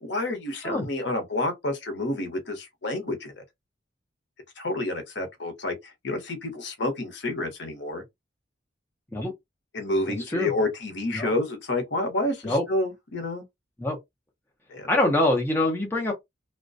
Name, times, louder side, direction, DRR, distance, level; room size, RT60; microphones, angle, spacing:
voice 1, 0.0-3.4 4.6-5.7 6.0-8.0 9.7-13.4 14.7-14.9, left 2 dB, 65° left, 0.8 m, -29 dB
voice 2, 14.9-16.1, left 1 dB, 10° left, 0.6 m, -24 dB
2.3 x 2.1 x 2.5 m
head